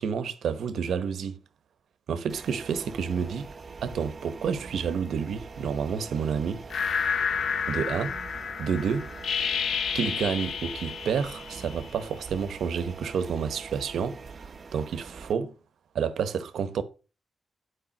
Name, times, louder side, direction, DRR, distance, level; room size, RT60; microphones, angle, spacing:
voice 1, 0.0-1.4 2.1-3.5 3.8-6.6 7.7-8.1 8.6-9.1 9.9-15.5 15.9-16.8, right 6 dB, 85° right, 0.9 m, -29 dB
sound 1, 2.3-15.3, right 4 dB, 50° right, 0.8 m, -44 dB
sound 2, 6.7-12.1, left 7 dB, 80° left, 0.7 m, -30 dB
8.9 x 4.9 x 6.0 m
cardioid pair, 70°, 0 cm